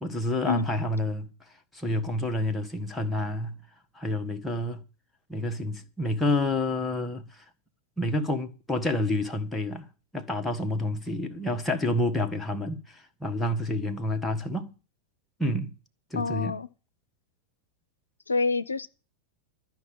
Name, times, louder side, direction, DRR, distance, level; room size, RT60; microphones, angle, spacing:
voice 1, 0.0-1.3 1.7-3.6 3.9-4.8 5.3-7.4 8.0-9.9 10.1-14.7 15.4-15.7 16.1-16.6, left 1 dB, 5° left, 1.5 m, -29 dB
voice 2, 16.2-16.7 18.3-18.9, left 4 dB, 75° left, 0.5 m, -27 dB
13.0 x 5.8 x 9.1 m
figure-of-eight pair, 90°, 0 cm